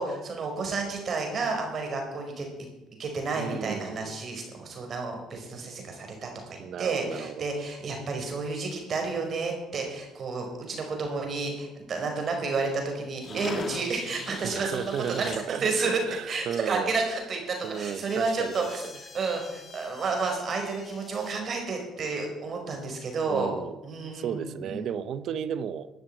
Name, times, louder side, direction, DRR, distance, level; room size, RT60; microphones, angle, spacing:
voice 1, 0.0-2.5 3.0-16.0 16.3-23.5 23.8-24.9, right 4 dB, 50° right, 5.2 m, -31 dB
voice 2, 3.3-4.2 6.6-7.5 13.3-13.7 14.4-16.9 17.6-18.5 23.3-23.8 24.1-25.9, right 8 dB, 65° right, 0.8 m, -34 dB
sound 1, 13.2-15.4 17.5-21.4, left 4 dB, 40° left, 1.4 m, -43 dB
13.0 x 7.3 x 8.9 m
supercardioid pair, 80°, 0 cm